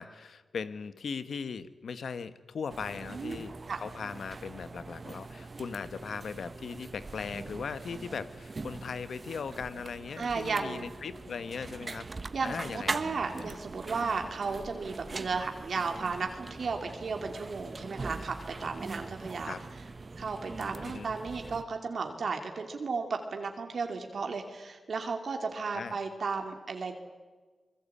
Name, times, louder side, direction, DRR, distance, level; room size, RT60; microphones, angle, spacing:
voice 1, 0.0-12.1 12.4-13.0 13.3-13.5 19.4-19.6 20.8-21.1 25.7-26.0, left 5 dB, 80° left, 13 dB, 1.2 m, -39 dB
sound 1, 2.7-21.6, right 3 dB, 45° right, 1.3 m, -42 dB
voice 2, 10.2-10.9 12.3-19.5 20.2-26.9, right 4 dB, 70° right, 4 dB, 2.5 m, -34 dB
26.0 x 21.0 x 8.6 m, 1.4 s
cardioid pair, 55°, 0 cm